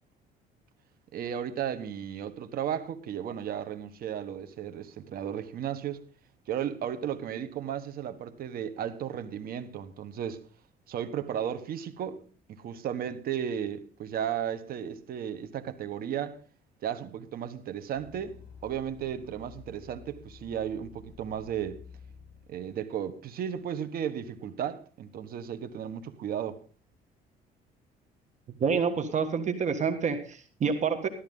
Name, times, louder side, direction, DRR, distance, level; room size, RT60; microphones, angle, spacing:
voice 1, 1.1-6.0 6.5-10.4 10.9-12.2 12.5-16.4 16.8-18.4 18.6-21.8 22.5-26.6, right 9 dB, 60° right, 1.4 m, -34 dB
sound 1, 17.9-22.9, left 5 dB, 45° left, 7.4 m, -51 dB
voice 2, 28.6-31.1, right 6 dB, 45° right, 1.6 m, -28 dB
13.5 x 13.0 x 3.8 m
cardioid pair, 110°, 17 cm